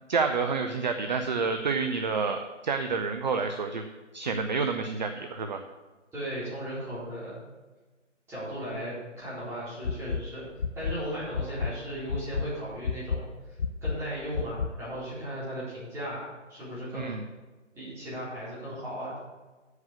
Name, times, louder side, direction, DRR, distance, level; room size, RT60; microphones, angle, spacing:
voice 1, 0.1-3.8 4.1-5.6 16.9-17.2, right 4 dB, 35° right, 7 dB, 0.6 m, -29 dB
voice 2, 6.1-7.4 8.3-10.4 10.7-13.3 13.8-17.2 17.8-19.2, equal, 5° right, -10 dB, 4.1 m, -36 dB
sound 1, 9.8-10.2 10.6-10.9 11.3-11.7 12.1-12.4 12.8-13.2 13.6-13.9 14.3-14.7, left 6 dB, 40° left, 0.5 m, -29 dB
8.0 x 7.2 x 8.5 m, 1.2 s
figure-of-eight pair, 150°, 37 cm